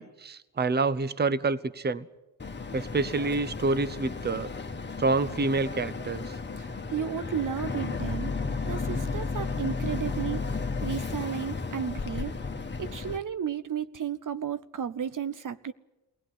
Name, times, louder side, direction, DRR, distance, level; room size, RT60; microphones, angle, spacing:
voice 1, 0.0-2.1 2.7-4.5 5.0-6.3, right 3 dB, 25° right, 1.0 m, -27 dB
Boat Water vehicle, 2.4-13.2, left 4 dB, 25° left, 1.7 m, -33 dB
voice 2, 6.6-8.4 8.7-12.4 12.8-15.7, right 8 dB, 50° right, 1.0 m, -33 dB
22.0 x 17.0 x 9.9 m
cardioid pair, 65°, 41 cm